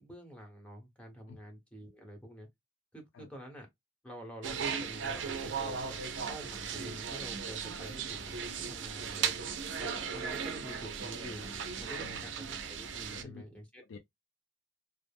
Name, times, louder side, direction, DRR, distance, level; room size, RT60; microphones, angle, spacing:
voice 1, 0.0-2.5 2.9-3.7 4.0-6.0 6.3-9.4 9.8-13.8, equal, 5° left, 0.9 m, -48 dB
sound 1, 4.4-13.2, right 6 dB, 70° right, 0.5 m, -37 dB
voice 2, 12.0-12.3 13.1-13.4 13.8-14.0, left 5 dB, 75° left, 0.4 m, -49 dB
2.3 x 2.0 x 3.3 m
head